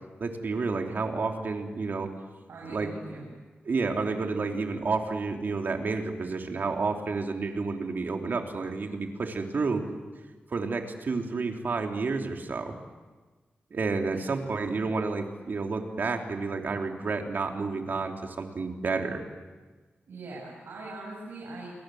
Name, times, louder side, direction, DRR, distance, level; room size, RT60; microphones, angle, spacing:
voice 1, 0.2-2.1 2.7-2.9 3.6-9.8 10.5-12.8 13.7-19.2, right 4 dB, 60° right, 3 dB, 3.3 m, -30 dB
voice 2, 2.5-3.3 14.1-14.2 20.1-21.7, right 2 dB, 85° right, -4 dB, 7.5 m, -41 dB
30.0 x 23.5 x 7.8 m, 1.3 s
wide cardioid pair, 90°, 4 cm